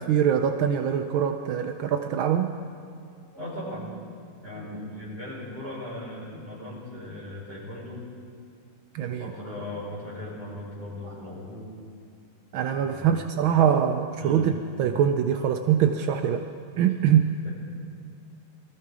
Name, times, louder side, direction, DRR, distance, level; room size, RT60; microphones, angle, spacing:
voice 1, 0.0-2.5 8.9-9.3 12.5-14.5 14.8-16.4 16.8-17.4, right 9 dB, 75° right, 6 dB, 1.4 m, -23 dB
voice 2, 3.3-3.9 4.4-8.1 9.0-11.7 12.6-13.2 14.2-14.5 17.4-17.5, left 1 dB, 25° left, -6 dB, 5.3 m, -38 dB
21.0 x 14.0 x 4.8 m, 2.4 s
omnidirectional pair, 2.4 m